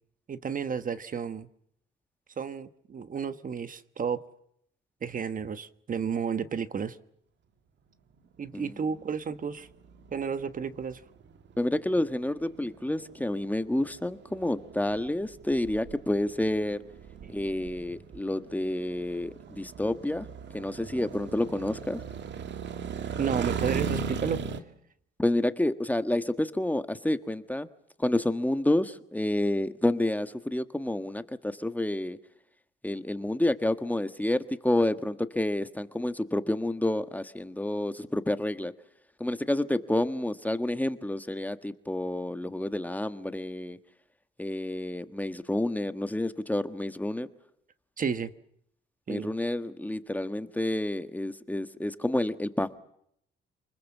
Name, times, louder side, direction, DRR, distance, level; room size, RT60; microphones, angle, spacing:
voice 1, 0.3-1.5 2.4-4.2 5.0-7.0 8.4-9.7 10.1-11.0 17.2-17.3 23.2-24.4 48.0-48.3 49.1-49.3, right 6 dB, 45° right, 12 dB, 1.3 m, -32 dB
sound 1, 8.5-24.6, right 6 dB, 65° right, 2.1 m, -38 dB
voice 2, 11.6-16.8 17.3-20.3 20.5-22.0 25.2-27.7 28.0-32.2 32.8-38.7 39.2-43.8 44.4-47.3 49.1-52.8, left 1 dB, 10° left, 10 dB, 1.4 m, -29 dB
29.0 x 21.0 x 7.3 m, 0.71 s
cardioid pair, 90°, 20 cm